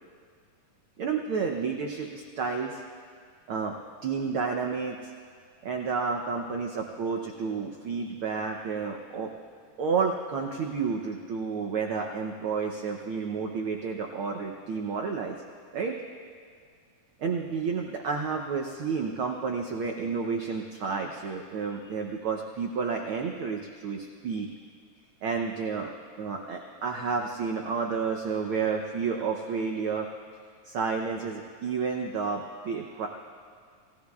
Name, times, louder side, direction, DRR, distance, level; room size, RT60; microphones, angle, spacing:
voice 1, 1.0-2.8 3.5-3.7 4.0-5.1 5.6-9.3 9.8-15.4 15.7-16.0 17.2-24.5 25.2-25.9 26.2-30.1 30.6-33.1, right 5 dB, 75° right, 2 dB, 1.2 m, -30 dB
29.0 x 16.5 x 2.4 m, 2.1 s
omnidirectional pair, 3.4 m